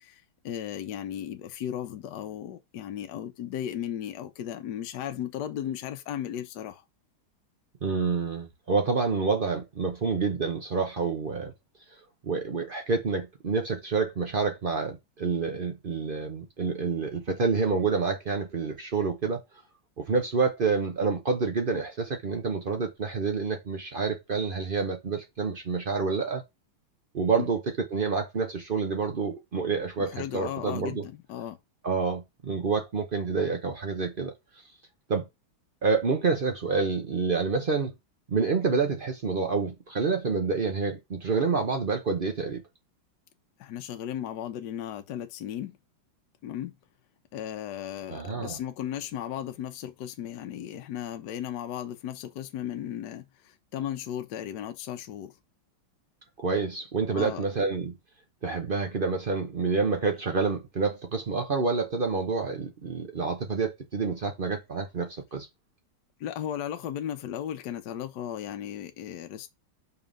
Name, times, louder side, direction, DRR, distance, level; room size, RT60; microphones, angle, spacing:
voice 1, 0.0-6.8 27.4-27.5 30.0-31.6 43.6-45.8 46.4-46.7 47.3-55.3 57.1-57.4 66.2-69.5, left 10 dB, 65° left, 1.2 m, -36 dB
voice 2, 7.8-11.5 12.2-19.4 20.0-26.4 27.1-27.6 27.9-31.0 31.8-34.3 35.1-35.3 35.8-37.9 38.3-42.6 48.1-48.6 56.4-58.0 58.4-65.5, right 4 dB, 65° right, 0.5 m, -28 dB
5.5 x 3.5 x 5.3 m
omnidirectional pair, 2.3 m